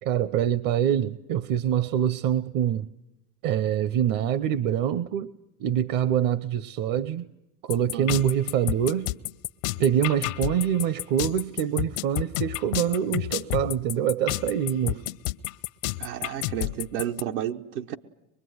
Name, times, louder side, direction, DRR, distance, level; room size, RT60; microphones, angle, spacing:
voice 1, 0.0-2.9 3.4-5.3 5.6-7.3 7.6-9.1 9.8-15.0, right 10 dB, 50° right, 0.9 m, -25 dB
sound 1, 7.7-17.2, left 20 dB, 75° left, 0.9 m, -30 dB
voice 2, 7.9-8.2 16.0-17.9, right 11 dB, 80° right, 1.3 m, -32 dB
24.0 x 23.0 x 9.5 m
supercardioid pair, 115°, 43 cm